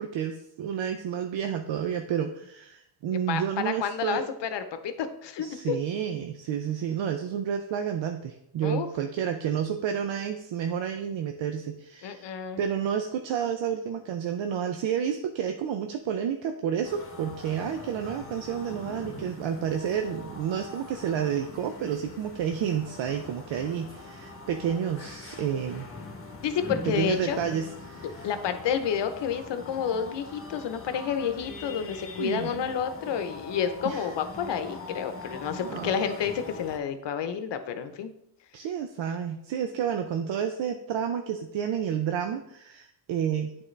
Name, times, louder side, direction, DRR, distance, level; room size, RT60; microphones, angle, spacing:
voice 1, 0.0-4.2 5.4-12.3 12.6-25.9 26.8-28.3 32.2-32.7 33.8-34.1 35.5-36.1 38.5-43.5, right 8 dB, 75° right, 6 dB, 0.6 m, -30 dB
voice 2, 3.1-5.8 8.6-8.9 12.0-12.6 26.4-27.4 28.2-38.1, left 7 dB, 65° left, 9 dB, 0.8 m, -30 dB
sound 1, 16.8-36.8, left 3 dB, 30° left, 1.0 m, -42 dB
9.0 x 3.7 x 3.2 m, 0.77 s
cardioid pair, 95°, 46 cm